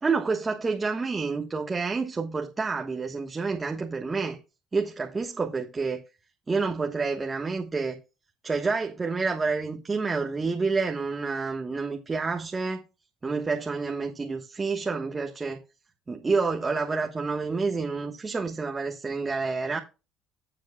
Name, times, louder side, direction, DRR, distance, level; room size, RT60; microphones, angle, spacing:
voice 1, 0.0-4.4 4.7-6.0 6.5-8.0 8.4-12.8 13.2-15.6 16.1-19.8, right 4 dB, 25° right, 1.4 m, -28 dB
13.0 x 7.5 x 2.3 m
supercardioid pair, 70°, 0 cm